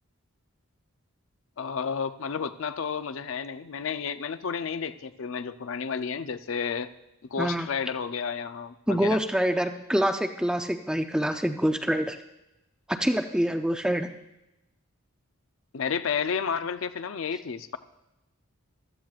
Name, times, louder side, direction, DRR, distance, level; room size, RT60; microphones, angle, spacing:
voice 1, 1.6-6.9 7.3-9.2 15.7-17.8, left 6 dB, 65° left, 12 dB, 0.5 m, -31 dB
voice 2, 7.4-7.7 8.9-12.2 12.9-14.1, equal, 5° right, 7 dB, 0.4 m, -26 dB
15.0 x 13.0 x 2.4 m, 0.95 s
head